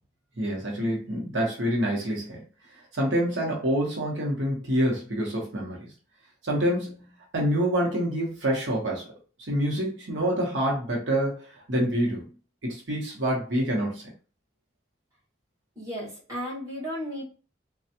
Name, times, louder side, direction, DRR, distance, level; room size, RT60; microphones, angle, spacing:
voice 1, 0.4-2.4 2.9-5.8 6.4-9.0 9.5-12.3 12.6-14.1, equal, 85° right, -2 dB, 1.0 m, -27 dB
voice 2, 15.7-17.2, equal, 20° right, -8 dB, 1.4 m, -34 dB
3.3 x 2.3 x 2.8 m, 0.36 s
head